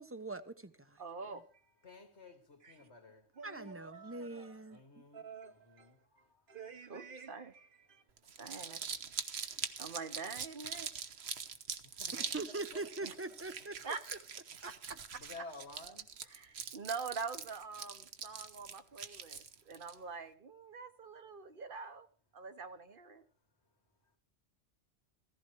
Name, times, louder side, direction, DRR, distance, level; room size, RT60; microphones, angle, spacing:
voice 1, 0.0-1.0 3.4-4.8 12.1-13.7, right 2 dB, 15° right, 0.8 m, -42 dB
voice 2, 1.0-1.4 2.6-2.8 3.3-4.8 5.1-5.9 6.5-8.0 8.4-8.8 9.8-10.9 13.0-13.1 13.8-14.0 14.6-15.2 15.8-15.9 16.3-22.1 22.3-23.2, right 5 dB, 55° right, 1.4 m, -45 dB
voice 3, 1.8-3.8 4.7-6.4 8.2-9.0 11.8-12.8 15.2-16.1, left 3 dB, 85° left, 2.6 m, -54 dB
Crumpling crinkling, 8.2-19.9, right 6 dB, 70° right, 1.3 m, -43 dB
16.0 x 15.0 x 4.6 m
omnidirectional pair, 1.1 m